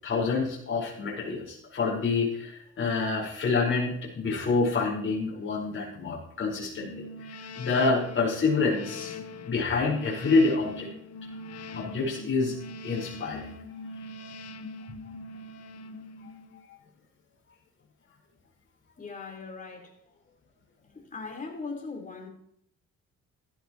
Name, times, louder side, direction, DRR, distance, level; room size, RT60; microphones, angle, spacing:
voice 1, 0.0-9.2 9.5-10.9 11.7-12.6 12.8-13.5 16.2-16.7, left 4 dB, 40° left, 4.9 m, -27 dB
sound 1, 6.7-16.7, left 2 dB, 55° left, 1.1 m, -42 dB
voice 2, 19.0-20.0 20.3-20.4 20.9-22.3, left 4 dB, 25° left, 4.0 m, -39 dB
16.0 x 13.0 x 3.1 m
cardioid pair, 90°, 30 cm